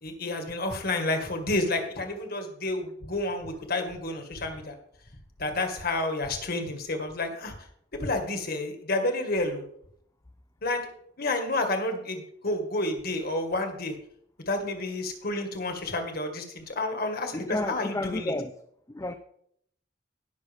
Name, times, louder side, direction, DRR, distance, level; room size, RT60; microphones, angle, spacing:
voice 1, 0.0-4.7 5.4-7.5 7.9-9.6 10.6-10.8 11.2-14.0 14.5-18.3, left 2 dB, 55° left, 5 dB, 1.8 m, -30 dB
voice 2, 17.3-18.5 18.9-19.1, left 1 dB, 15° left, 7 dB, 0.5 m, -31 dB
18.0 x 6.3 x 3.5 m, 0.68 s
head